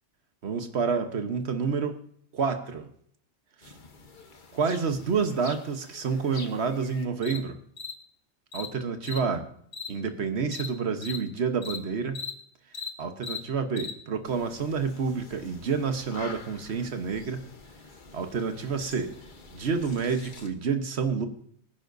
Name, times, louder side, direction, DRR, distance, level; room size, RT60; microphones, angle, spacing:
voice 1, 0.4-2.0 2.3-2.9 3.6-3.7 4.5-7.6 8.5-9.5 9.9-12.2 13.0-17.4 18.1-19.1 19.5-21.3, right 5 dB, 55° right, 8 dB, 1.3 m, -29 dB
sound 1, 3.6-7.4 7.8-7.9 8.5-8.7 9.0-9.2 9.7-9.9 10.5-10.7 11.0-11.2 11.6-11.8 12.1-12.3 12.7-12.9 13.2-13.4 13.8-13.9 14.3-20.5, left 5 dB, 40° left, 1.2 m, -42 dB
22.5 x 10.0 x 2.7 m, 0.62 s
omnidirectional pair, 1.4 m